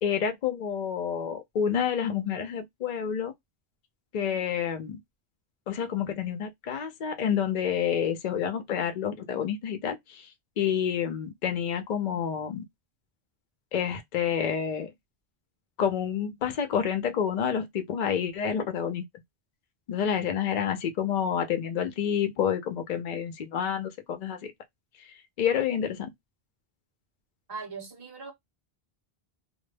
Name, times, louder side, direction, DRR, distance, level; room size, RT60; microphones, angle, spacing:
voice 1, 0.0-3.3 4.1-5.0 5.7-10.3 10.6-12.6 13.7-14.9 15.8-19.0 19.9-24.4 25.4-26.1, left 8 dB, 55° left, 0.6 m, -28 dB
voice 2, 27.5-28.3, right 4 dB, 30° right, 0.6 m, -39 dB
2.1 x 2.0 x 3.2 m
omnidirectional pair, 1.1 m